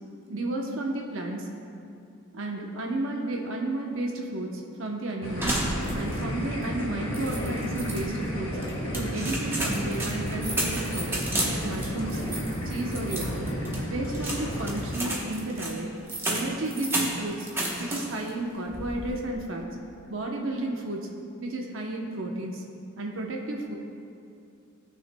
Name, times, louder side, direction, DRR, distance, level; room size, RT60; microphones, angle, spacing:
voice 1, 0.3-1.5 2.3-5.6 5.9-8.6 8.9-12.2 12.6-13.4 13.9-15.9 16.3-17.5 17.8-19.7 20.1-21.1 21.4-22.6 23.0-23.8, right 2 dB, 70° right, 0 dB, 0.8 m, -32 dB
sound 1, 5.2-15.0, equal, 25° left, 1.5 m, -32 dB
sound 2, 5.4-6.3 6.6-6.7 7.1-8.0 8.6-18.3 18.7-19.2, right 1 dB, 10° right, 0.9 m, -32 dB
16.5 x 6.3 x 2.2 m, 2.5 s
head